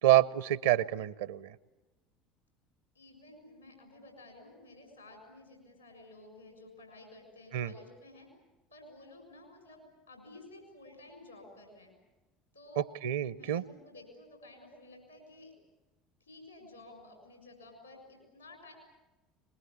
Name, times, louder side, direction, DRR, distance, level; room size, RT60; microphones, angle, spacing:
voice 1, 0.0-1.6 7.5-7.7 12.8-13.6, right 13 dB, 70° right, 18 dB, 0.8 m, -27 dB
voice 2, 2.9-8.3 8.7-9.8 10.1-11.9 12.5-12.8 13.2-15.5 16.2-18.7, left 2 dB, 90° left, 3 dB, 6.7 m, -53 dB
23.5 x 21.5 x 9.7 m, 1.1 s
figure-of-eight pair, 65°, 0 cm